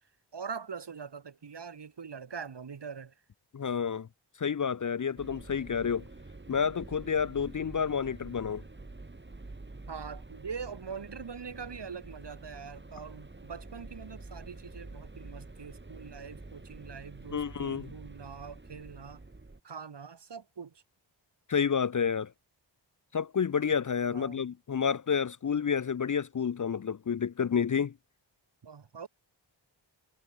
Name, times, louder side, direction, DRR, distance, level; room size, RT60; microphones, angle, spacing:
voice 1, 0.3-3.1 9.9-19.2 19.6-20.8 24.1-24.4 28.6-29.1, right 6 dB, 60° right, 1.3 m, -43 dB
voice 2, 3.5-4.1 4.4-6.0 6.5-8.6 17.3-17.9 21.5-22.3 23.1-27.9, left 7 dB, 40° left, 0.5 m, -29 dB
sound 1, 5.2-19.6, right 2 dB, 25° right, 1.5 m, -47 dB
wide cardioid pair, 45°, 46 cm